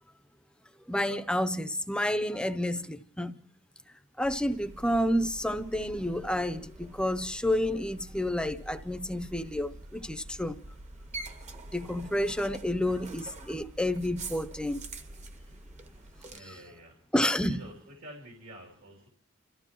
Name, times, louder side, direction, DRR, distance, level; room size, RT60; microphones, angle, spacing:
voice 1, 0.9-3.4 4.2-10.6 11.7-14.8 17.1-17.6, left 1 dB, 5° left, 0.6 m, -30 dB
sound 1, 4.2-16.4, right 2 dB, 35° right, 1.0 m, -46 dB
voice 2, 16.3-17.0 17.5-19.1, right 1 dB, 75° right, 3.2 m, -48 dB
29.5 x 14.5 x 3.0 m
head